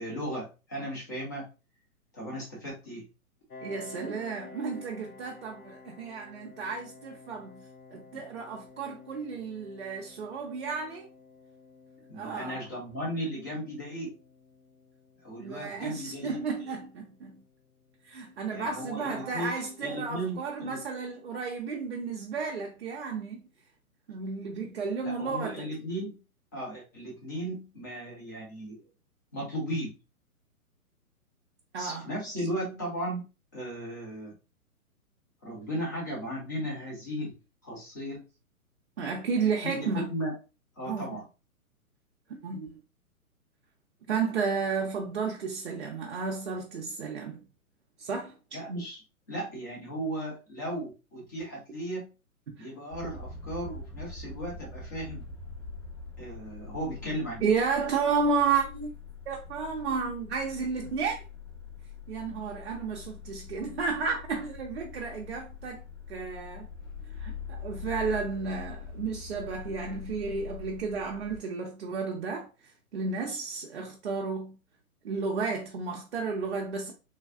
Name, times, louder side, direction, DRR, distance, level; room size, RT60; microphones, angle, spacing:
voice 1, 0.0-1.4 2.1-3.0 7.9-8.0 12.1-14.1 15.2-16.4 18.5-19.5 19.8-20.8 25.0-26.2 26.5-28.8 29.3-30.0 31.8-33.3 33.5-34.3 35.4-37.3 37.6-38.2 39.6-40.3 40.8-41.2 48.5-49.0 49.3-52.1 52.6-55.2 56.2-57.5, equal, 15° left, 0.4 m, -36 dB
Piano, 3.5-18.9, left 3 dB, 85° left, 0.8 m, -52 dB
voice 2, 3.6-7.6 7.9-11.1 12.1-12.6 15.4-17.4 18.0-23.4 24.1-25.7 31.7-32.1 32.4-32.5 39.0-40.1 40.9-41.2 42.3-42.7 44.1-47.4 48.0-48.3 52.5-52.7 57.4-58.9 59.3-61.2 62.1-65.8 66.1-66.7 67.2-72.5 72.9-74.6 75.0-76.9, right 5 dB, 50° right, 0.5 m, -32 dB
sound 1, 52.9-71.4, left 5 dB, 60° left, 1.6 m, -43 dB
3.3 x 2.3 x 2.3 m
figure-of-eight pair, 120°, 44 cm